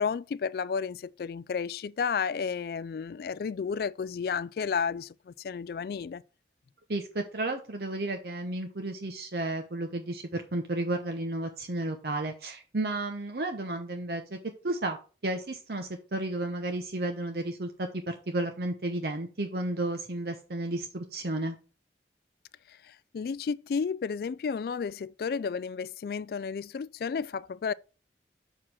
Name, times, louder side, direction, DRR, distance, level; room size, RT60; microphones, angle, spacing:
voice 1, 0.0-6.2 22.9-27.7, left 6 dB, 55° left, 0.3 m, -32 dB
voice 2, 6.9-14.4 14.6-15.0 15.2-21.6, right 2 dB, 60° right, 0.8 m, -32 dB
6.1 x 4.9 x 5.6 m
head